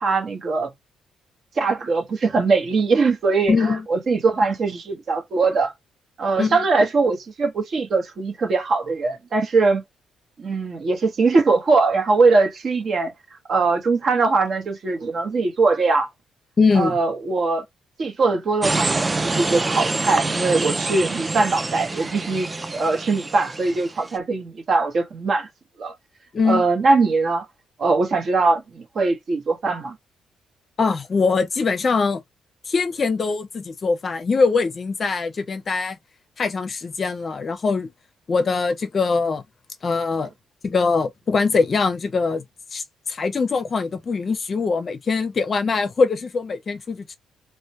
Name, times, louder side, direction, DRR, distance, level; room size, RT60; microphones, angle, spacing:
voice 1, 0.0-0.7 1.6-5.7 6.2-9.8 10.4-13.1 13.5-16.1 16.7-17.6 18.0-25.5 25.8-25.9 26.5-27.5 27.8-30.0, right 3 dB, 50° right, 0.9 m, -21 dB
voice 2, 3.5-3.8 6.4-6.6 16.6-17.0 26.3-26.7 30.8-32.2 32.7-36.0 36.4-37.9 38.3-39.4 39.8-40.3 40.6-42.4 42.7-47.2, left 4 dB, 40° left, 0.5 m, -22 dB
sound 1, 18.6-24.2, right 3 dB, 20° right, 0.3 m, -26 dB
2.2 x 2.1 x 2.7 m
cardioid pair, 90°, 0 cm